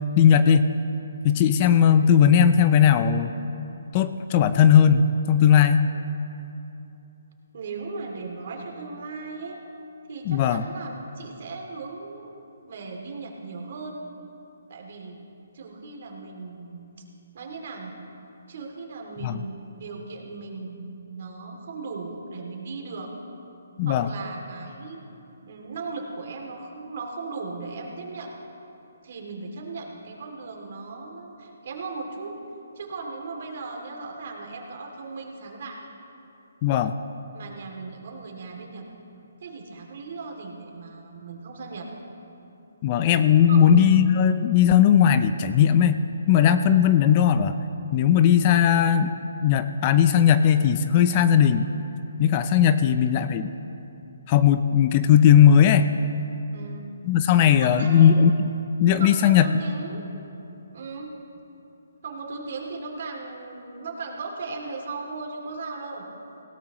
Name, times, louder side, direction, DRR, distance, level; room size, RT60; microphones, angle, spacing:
voice 1, 0.2-0.7 1.2-3.3 3.9-5.9 10.3-10.6 19.2-19.4 23.8-24.1 36.6-36.9 42.8-47.5 47.9-49.1 49.4-51.6 52.2-53.5 54.3-55.9 57.0-58.3 58.8-59.5, left 8 dB, 30° left, 11 dB, 0.4 m, -18 dB
voice 2, 7.5-9.6 10.1-14.0 14.7-15.2 15.5-16.9 17.3-17.9 18.5-23.1 23.8-25.0 25.4-28.3 29.0-32.3 32.7-35.8 37.3-38.9 39.4-41.9 43.4-43.7 56.5-56.9 57.6-58.1 59.0-60.0 60.7-61.1 62.0-66.0, right 3 dB, 50° right, 1 dB, 2.5 m, -37 dB
19.0 x 17.0 x 3.0 m, 2.8 s
hypercardioid pair, 160°, 0 cm